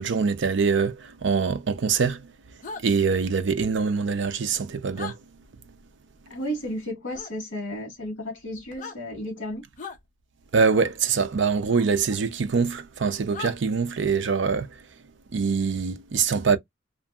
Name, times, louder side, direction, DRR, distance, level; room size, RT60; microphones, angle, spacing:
voice 1, 0.0-2.3 2.8-5.2 10.5-14.8 15.3-16.6, right 5 dB, 60° right, 0.5 m, -24 dB
sound 1, 2.6-2.8 4.9-5.2 7.1-7.3 8.7-9.0 9.8-10.0 12.1-12.2 13.3-13.5, left 4 dB, 40° left, 0.6 m, -37 dB
voice 2, 6.3-9.6, equal, 70° left, 1.4 m, -33 dB
2.6 x 2.6 x 2.3 m
head